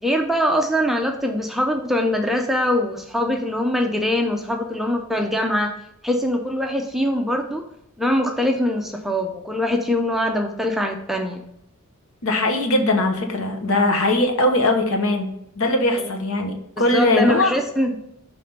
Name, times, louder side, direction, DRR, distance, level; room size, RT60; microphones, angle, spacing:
voice 1, 0.0-5.7 6.0-7.6 8.0-11.4 16.0-16.1 16.8-17.9, left 1 dB, ahead, 3 dB, 0.5 m, -23 dB
voice 2, 12.2-15.3 15.6-17.6, left 1 dB, 70° left, 4 dB, 1.0 m, -20 dB
5.5 x 3.3 x 5.1 m, 0.78 s
head